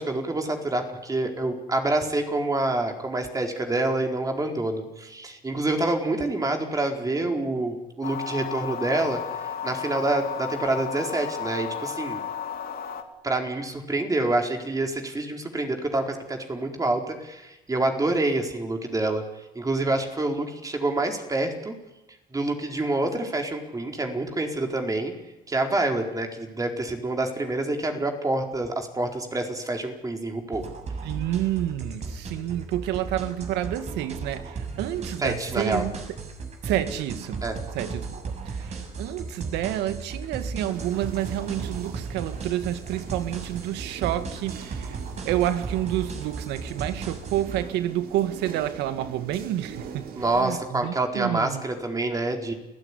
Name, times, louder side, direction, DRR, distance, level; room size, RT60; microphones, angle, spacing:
voice 1, 0.0-12.2 13.2-19.2 19.5-21.7 22.3-25.1 25.5-30.6 35.2-35.8 37.4-37.5 50.2-52.5, right 2 dB, 20° right, 4.4 m, -27 dB
sound 1, 8.0-13.0, left 8 dB, 65° left, 3.0 m, -33 dB
sound 2, 30.5-47.6, right 4 dB, 40° right, 6.5 m, -35 dB
voice 2, 31.0-35.9 36.6-37.4 37.7-51.6, right 12 dB, 90° right, 2.0 m, -29 dB
sound 3, 40.7-50.4, right 6 dB, 65° right, 4.1 m, -43 dB
29.0 x 16.5 x 10.0 m
cardioid pair, 110°, 17 cm